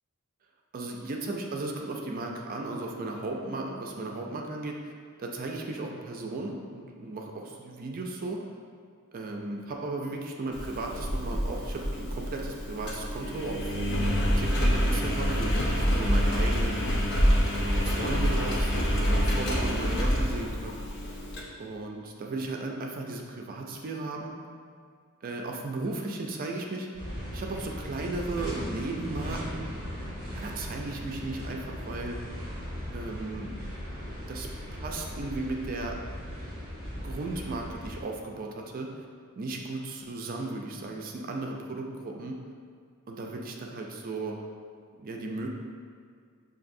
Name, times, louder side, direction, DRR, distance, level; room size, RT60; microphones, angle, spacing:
voice 1, 0.7-4.9 5.2-8.4 9.1-13.7 14.4-16.8 17.5-20.8 21.6-24.3 25.2-26.9 27.3-29.7 30.3-32.2 32.9-33.5 34.3-34.5 34.8-36.0 37.0-38.9 39.4-42.4 43.1-44.4 45.0-45.5, right 2 dB, 40° right, 1 dB, 0.4 m, -35 dB
Engine, 10.5-21.4, equal, 50° left, 0.7 m, -27 dB
sound 1, 26.9-38.0, equal, 20° left, 1.5 m, -38 dB
6.2 x 2.6 x 2.5 m, 2.1 s
head